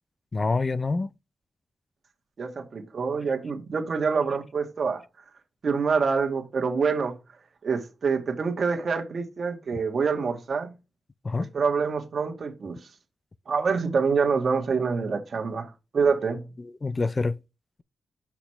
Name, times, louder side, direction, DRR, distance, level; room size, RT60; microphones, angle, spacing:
voice 1, 0.3-1.1 11.2-11.5 16.6-17.4, left 3 dB, 40° left, 0.4 m, -26 dB
voice 2, 2.4-5.0 5.6-7.1 7.6-10.7 11.4-12.8 13.5-16.4, right 5 dB, 60° right, 1.5 m, -26 dB
6.1 x 5.8 x 3.2 m
cardioid pair, 50°, 0 cm